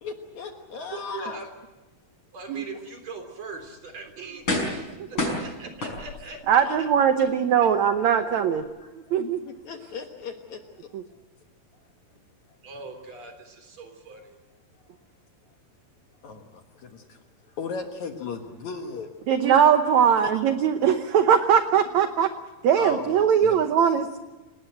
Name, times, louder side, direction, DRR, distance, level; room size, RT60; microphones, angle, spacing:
voice 1, 0.0-1.4 6.7-6.8 8.8-10.9 16.2-19.1 20.3-20.4 22.8-23.1 23.4-23.9, left 5 dB, 60° left, 5 dB, 2.4 m, -37 dB
voice 2, 0.9-1.5 2.3-4.8 5.1-6.9 7.2-7.3 12.6-14.4, right 4 dB, 45° right, 5 dB, 4.5 m, -41 dB
sound 1, 3.5-3.7 4.5-4.9 5.2-6.4 7.0-7.1, left 1 dB, 30° left, 6.0 m, -28 dB
voice 3, 6.5-8.6 9.1-9.4 10.9-11.0 19.3-22.3 22.6-24.2, right 8 dB, 70° right, 8 dB, 1.8 m, -20 dB
29.0 x 19.0 x 7.9 m, 1.1 s
omnidirectional pair, 4.4 m